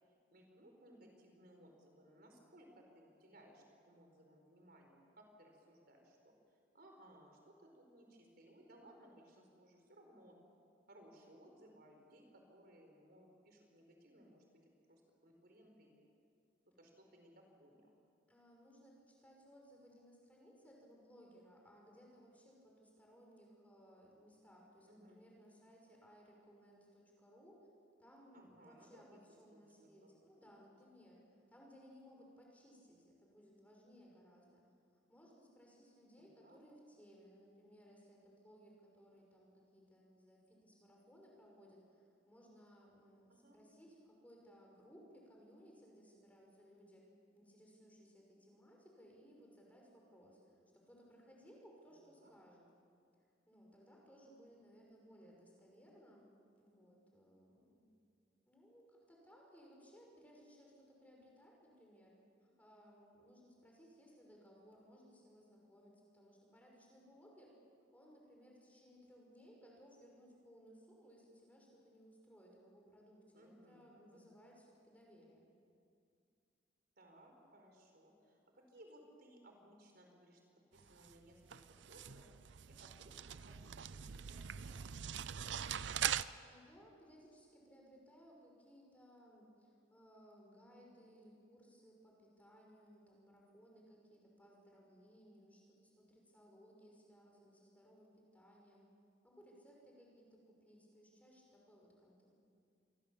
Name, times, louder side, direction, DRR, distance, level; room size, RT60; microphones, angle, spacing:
voice 1, 0.3-10.4 10.9-14.6 14.9-16.1 16.8-17.9 24.8-25.2 28.3-29.2 29.5-30.1 30.4-30.5 36.2-36.6 43.3-43.6 51.9-52.3 73.3-74.3 77.0-80.4 80.7-82.3 82.6-85.2, right 1 dB, 55° right, 2 dB, 4.6 m, -63 dB
voice 2, 18.3-27.7 28.0-31.2 31.5-34.6 35.1-47.0 47.3-52.6 53.2-56.3 56.6-57.9 58.5-62.1 62.4-67.6 67.9-75.5 86.4-98.8 99.2-102.4, equal, 10° left, -1 dB, 5.9 m, -62 dB
sound 1, 80.8-86.2, right 9 dB, 70° right, 0.6 m, -42 dB
27.5 x 23.0 x 7.4 m, 2.4 s
head